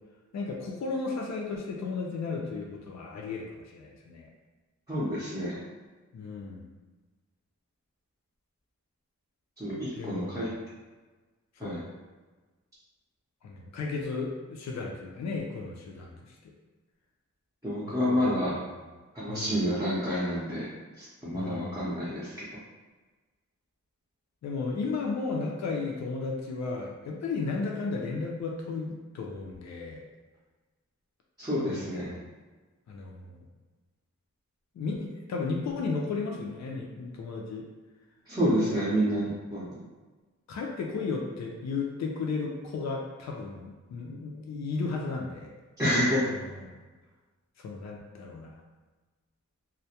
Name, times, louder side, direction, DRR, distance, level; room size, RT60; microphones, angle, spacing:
voice 1, 0.3-4.3 6.1-6.7 9.9-10.5 11.6-11.9 13.4-16.4 17.8-18.5 19.3-19.6 21.3-21.9 24.4-30.0 31.6-32.3 32.9-33.5 34.8-37.6 38.6-39.0 40.5-45.5 46.3-46.8 47.6-48.6, left 4 dB, 60° left, 0 dB, 0.4 m, -34 dB
voice 2, 4.9-5.6 9.6-10.5 11.6-11.8 17.6-18.6 19.1-20.7 21.0-22.3 31.4-32.1 38.3-39.8 45.8-46.2, equal, 10° right, -12 dB, 0.6 m, -28 dB
2.2 x 2.0 x 2.7 m, 1.3 s
wide cardioid pair, 120°, 30 cm